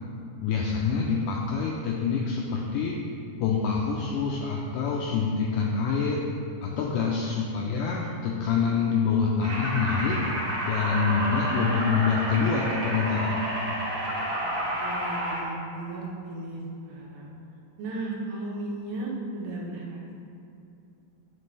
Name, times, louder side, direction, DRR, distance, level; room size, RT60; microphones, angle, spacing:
voice 1, 0.4-3.0 3.4-6.2 6.6-10.2 10.7-13.4, left 5 dB, 85° left, -2 dB, 1.8 m, -26 dB
voice 2, 6.6-7.1 14.4-14.5 14.8-16.6 16.9-17.3 17.8-20.1, right 2 dB, 80° right, -3 dB, 2.9 m, -36 dB
sound 1, 9.4-15.4, equal, 45° right, 2.0 m, -30 dB
9.5 x 5.2 x 3.3 m, 2.6 s
omnidirectional pair, 4.2 m